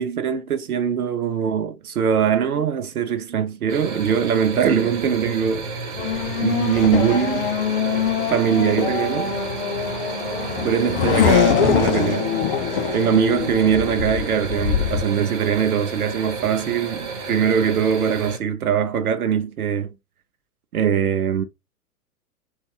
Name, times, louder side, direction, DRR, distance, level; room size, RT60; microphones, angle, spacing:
voice 1, 0.0-5.7 6.4-7.5 8.3-9.4 10.6-12.3 12.9-19.9 20.7-21.4, right 8 dB, 70° right, 0.6 m, -21 dB
sound 1, 3.7-18.4, right 4 dB, 35° right, 1.1 m, -32 dB
Race car auto racing / Accelerating revving vroom, 6.0-15.0, left 9 dB, 40° left, 0.6 m, -23 dB
3.6 x 2.5 x 3.2 m
figure-of-eight pair, 105°, 45 cm